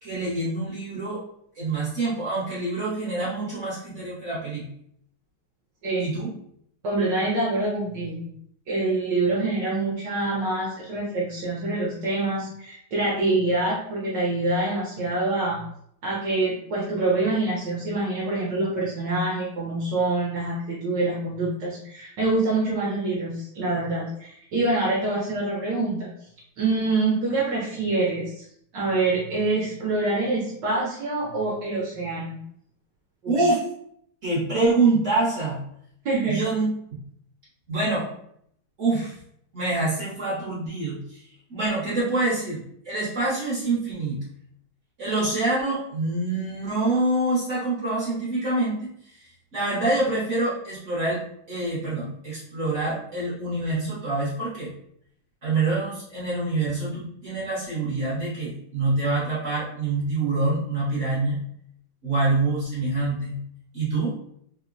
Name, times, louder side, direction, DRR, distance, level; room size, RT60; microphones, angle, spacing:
voice 1, 0.0-1.2 1.6-4.6 6.0-6.3 33.3-33.6 34.2-35.6 36.3-36.7 37.7-38.1 38.8-39.2 39.5-41.2 41.5-44.2 45.0-49.2 49.5-51.2 51.5-54.7 55.4-61.4 62.0-63.3 63.7-64.1, right 2 dB, 50° right, -8 dB, 0.9 m, -26 dB
voice 2, 6.8-8.3 8.7-15.6 16.0-26.1 26.6-28.5 28.7-32.4 33.2-33.5 36.0-36.4, right 2 dB, 70° right, -5 dB, 1.1 m, -25 dB
3.8 x 2.1 x 2.4 m, 0.68 s
omnidirectional pair, 2.4 m